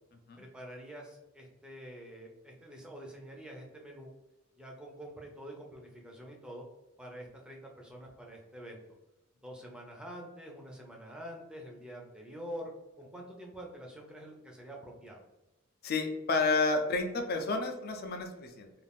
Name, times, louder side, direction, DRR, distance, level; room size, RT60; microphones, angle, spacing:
voice 1, 0.4-4.1 4.6-6.7 7.0-8.8 9.4-15.2, equal, 5° right, -1 dB, 0.5 m, -46 dB
voice 2, 15.8-18.7, left 3 dB, 50° left, 4 dB, 0.5 m, -30 dB
2.5 x 2.4 x 3.4 m, 1.0 s
head